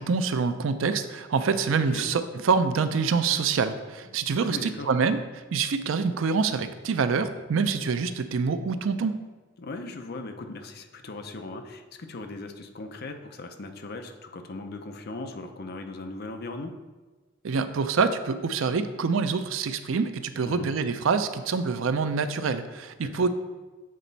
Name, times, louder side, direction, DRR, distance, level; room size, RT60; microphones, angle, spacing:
voice 1, 0.0-9.2 17.4-23.3, right 5 dB, 75° right, 11 dB, 0.4 m, -26 dB
voice 2, 1.7-2.1 4.4-4.9 9.6-16.7 20.4-20.7 23.0-23.3, left 2 dB, 50° left, 6 dB, 0.6 m, -38 dB
7.6 x 4.1 x 4.0 m, 1.3 s
head